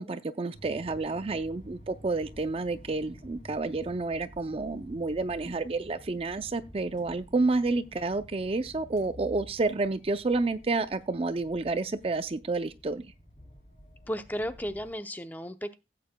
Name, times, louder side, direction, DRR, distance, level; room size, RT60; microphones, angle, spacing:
voice 1, 0.0-13.1, right 3 dB, 35° right, 0.5 m, -30 dB
sound 1, 0.5-14.9, equal, 45° left, 3.5 m, -51 dB
voice 2, 14.1-15.7, equal, 10° left, 0.6 m, -34 dB
16.5 x 8.5 x 2.2 m
head